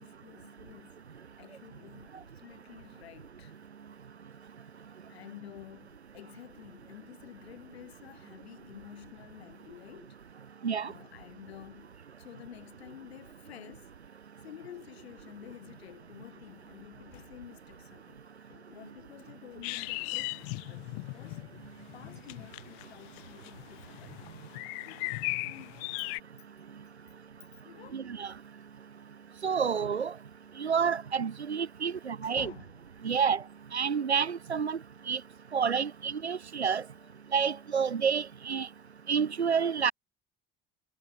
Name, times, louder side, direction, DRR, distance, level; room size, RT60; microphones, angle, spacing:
voice 1, 0.0-3.6 5.1-10.4 10.8-13.9 14.4-20.4 20.7-24.2 24.8-25.8 27.0-27.1 27.6-28.0 31.9-32.7 33.0-33.2 37.0-37.1, left 12 dB, 75° left, 6.0 m, -51 dB
sound 1, 19.6-26.2, left 40 dB or more, 60° left, 1.3 m, -38 dB
voice 2, 27.9-28.3 29.4-30.1 30.6-32.5 33.0-33.4 33.7-34.8 35.1-35.2 35.5-36.8 37.3-38.7 39.1-39.9, right 6 dB, 90° right, 0.7 m, -29 dB
figure-of-eight pair, 65°, 32 cm